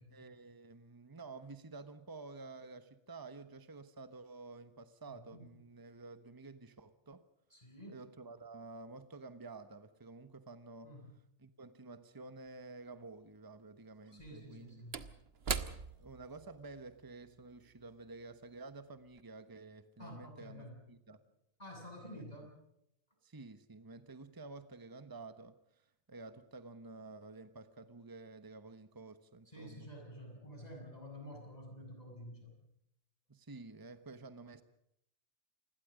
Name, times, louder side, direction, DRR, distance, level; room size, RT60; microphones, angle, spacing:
voice 1, 0.1-7.3 7.9-10.9 11.4-14.8 16.0-21.2 22.1-22.2 23.2-29.9 33.3-34.6, right 3 dB, 20° right, 1.1 m, -51 dB
voice 2, 5.1-5.4 7.5-8.0 10.8-11.2 14.1-15.0 20.0-20.8 21.6-22.6 29.5-32.6, equal, 35° left, 7.5 m, -50 dB
Slam / Wood, 12.5-12.6 14.0-18.7 19.1-19.2, right 5 dB, 60° right, 1.4 m, -43 dB
28.5 x 21.5 x 5.1 m
omnidirectional pair, 1.2 m